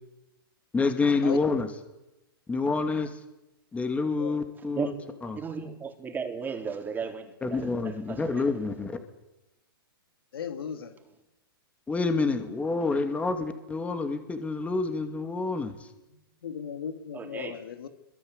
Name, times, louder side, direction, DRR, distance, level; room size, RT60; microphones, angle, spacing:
voice 1, 0.7-1.7 2.5-3.2 3.7-4.9 5.2-5.4 7.4-9.0 11.9-15.8, left 3 dB, 10° left, 7 dB, 2.5 m, -28 dB
voice 2, 5.3-5.8 6.1-8.4 17.1-17.6, right 6 dB, 15° right, 3 dB, 3.9 m, -35 dB
voice 3, 10.3-10.9 16.4-17.9, left 8 dB, 75° left, 8 dB, 2.7 m, -36 dB
26.0 x 23.0 x 8.3 m, 0.98 s
hypercardioid pair, 130°, 12 cm